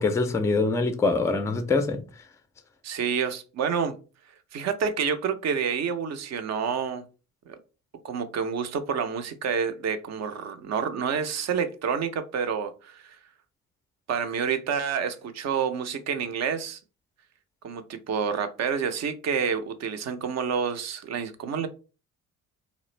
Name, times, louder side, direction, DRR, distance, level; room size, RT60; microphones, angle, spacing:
voice 1, 0.0-2.0, left 3 dB, 10° left, 0.4 m, -24 dB
voice 2, 2.8-3.9 4.5-7.0 7.5-7.6 8.0-13.2 14.1-16.8 17.6-21.7, right 6 dB, 45° right, 0.5 m, -28 dB
2.4 x 2.0 x 3.0 m
hypercardioid pair, 55°, 38 cm